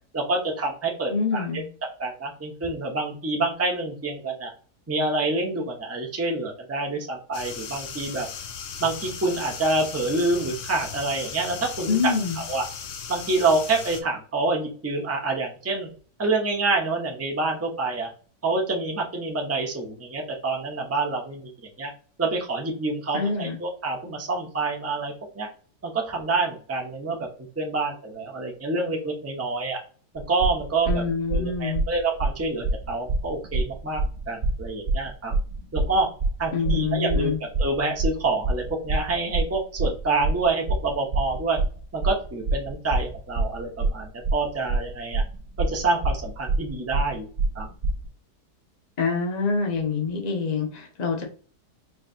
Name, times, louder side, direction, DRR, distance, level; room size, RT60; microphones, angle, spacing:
voice 1, 0.1-1.4 2.0-4.5 4.9-8.3 8.8-11.9 12.4-12.6 13.1-15.9 16.2-18.1 18.4-21.9 22.2-25.5 25.8-27.3 27.6-29.8 30.1-31.0 31.3-35.3 35.7-36.1 36.4-41.6 41.9-45.2 45.6-47.3 47.5-47.7, right 3 dB, 10° right, 0 dB, 0.7 m, -27 dB
voice 2, 1.1-1.6 11.9-12.4 23.1-23.6 30.9-31.8 36.5-37.4 49.0-51.2, left 5 dB, 30° left, 2 dB, 0.9 m, -26 dB
sound 1, 7.3-14.0, left 6 dB, 60° left, 1.0 m, -37 dB
sound 2, 30.2-48.1, right 3 dB, 45° right, 0.9 m, -26 dB
4.7 x 2.9 x 2.7 m, 0.41 s
omnidirectional pair, 1.7 m